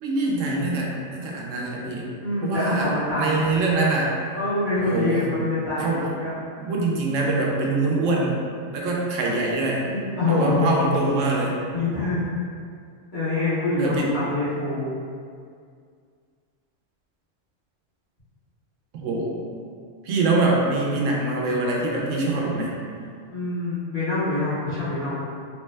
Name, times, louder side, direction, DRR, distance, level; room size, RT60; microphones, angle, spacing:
voice 1, 0.0-2.1 2.4-4.1 4.8-5.3 5.8-6.1 6.6-8.4 8.7-9.8 10.3-11.6 13.8-14.1 18.9-19.4 20.0-22.7, right 2 dB, 85° right, -2 dB, 1.0 m, -24 dB
voice 2, 2.2-3.5 4.3-6.4 9.9-10.7 11.7-12.2 13.1-14.9 23.3-25.2, left 2 dB, 40° left, -13 dB, 1.4 m, -25 dB
3.3 x 2.1 x 3.2 m, 2.2 s
omnidirectional pair, 1.3 m